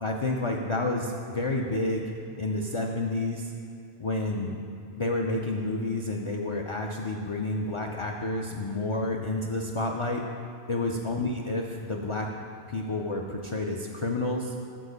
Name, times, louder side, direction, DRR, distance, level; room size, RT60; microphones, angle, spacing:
voice 1, 0.0-2.1 2.4-3.5 4.0-4.6 5.0-10.2 10.7-12.3 12.7-14.5, left 2 dB, 50° left, 0 dB, 0.4 m, -29 dB
6.2 x 4.9 x 6.6 m, 2.5 s
omnidirectional pair, 1.1 m